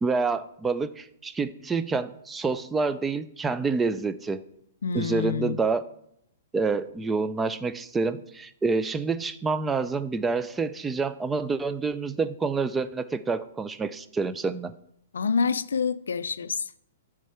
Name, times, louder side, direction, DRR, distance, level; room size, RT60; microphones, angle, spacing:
voice 1, 0.0-4.4 4.9-5.8 6.5-14.7, right 4 dB, 10° right, 0.3 m, -27 dB
voice 2, 4.8-5.6 15.1-16.7, left 5 dB, 85° left, 0.3 m, -27 dB
10.0 x 3.6 x 4.3 m
hypercardioid pair, 135°, 0 cm